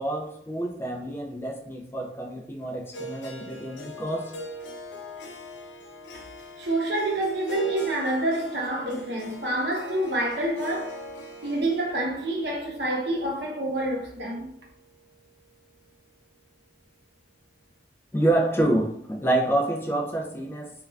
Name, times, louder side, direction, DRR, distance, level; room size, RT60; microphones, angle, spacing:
voice 1, 0.0-4.3 18.1-20.7, right 1 dB, 15° left, 0.3 m, -27 dB
Harp, 2.9-15.1, equal, 85° left, 0.5 m, -42 dB
voice 2, 6.6-11.0 11.4-14.5, right 1 dB, 70° right, 0.7 m, -27 dB
2.4 x 2.1 x 3.2 m
head